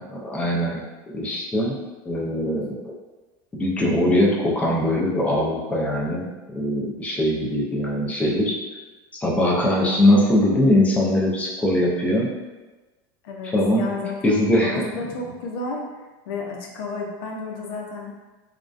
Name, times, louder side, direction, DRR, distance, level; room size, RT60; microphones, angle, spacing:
voice 1, 0.0-1.8 2.1-2.9 3.5-6.2 6.5-8.6 9.2-12.3 13.5-13.9 14.2-14.8, left 1 dB, 10° left, -4 dB, 0.4 m, -21 dB
voice 2, 13.2-14.3 14.6-15.8 16.3-18.1, left 3 dB, 85° left, 0 dB, 0.5 m, -32 dB
2.4 x 2.2 x 2.4 m, 1.2 s
supercardioid pair, 140°, 12 cm